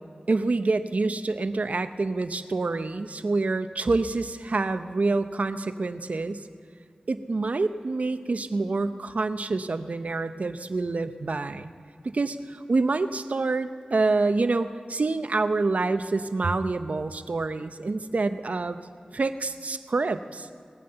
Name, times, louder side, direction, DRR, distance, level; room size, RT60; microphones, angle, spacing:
voice 1, 0.3-6.5 7.1-11.7 12.0-18.8 19.1-20.5, right 3 dB, 65° right, 10 dB, 0.7 m, -27 dB
19.5 x 9.1 x 7.9 m, 2.3 s
wide cardioid pair, 55°, 3 cm